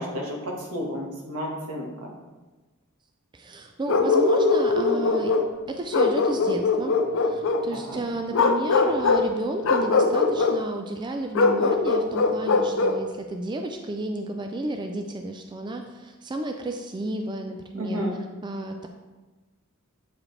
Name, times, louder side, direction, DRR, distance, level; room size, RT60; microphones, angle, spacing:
voice 1, 0.0-2.1 7.7-8.0 17.7-18.1, equal, 80° right, -1 dB, 1.5 m, -32 dB
voice 2, 3.3-5.3 5.7-18.0 18.4-18.9, right 2 dB, 20° right, 4 dB, 0.3 m, -32 dB
Bark, 3.9-5.5 5.9-7.7 8.3-9.3 9.6-10.6 11.3-13.0, left 4 dB, 60° left, 0.5 m, -21 dB
8.4 x 4.9 x 3.2 m, 1.2 s
head